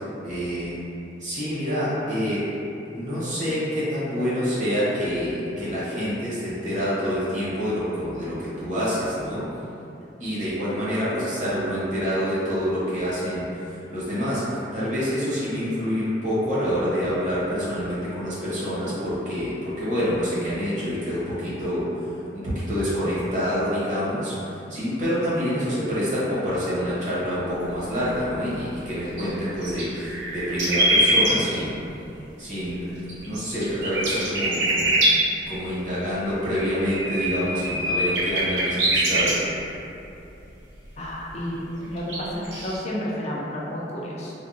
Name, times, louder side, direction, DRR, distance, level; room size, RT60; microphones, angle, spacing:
voice 1, 0.2-0.8 1.2-2.5 2.9-9.5 10.2-21.9 22.3-31.8 32.4-33.0 33.2-35.0 35.5-39.4, equal, 40° right, -10 dB, 0.9 m, -27 dB
sound 1, 28.8-28.9 29.2-31.3 33.1-35.1 36.3-39.3 40.0-40.1 41.4-41.5 41.8-42.2 42.4-42.8, right 1 dB, 80° right, 0.6 m, -23 dB
voice 2, 41.0-44.3, equal, 35° left, -5 dB, 0.4 m, -31 dB
3.4 x 2.1 x 2.6 m, 2.7 s
head